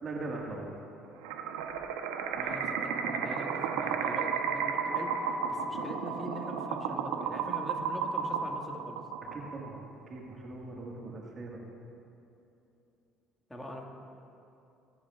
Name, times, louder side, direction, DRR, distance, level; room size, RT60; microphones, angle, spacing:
voice 1, 0.0-0.7 9.3-9.8 10.1-11.6, right 2 dB, 40° right, -1 dB, 1.8 m, -40 dB
sound 1, 1.2-9.7, right 6 dB, 80° right, 0.9 m, -33 dB
voice 2, 2.3-9.0 13.5-13.8, equal, 10° left, 1 dB, 1.9 m, -42 dB
19.0 x 10.5 x 2.5 m, 2.8 s
hypercardioid pair, 65°, 0 cm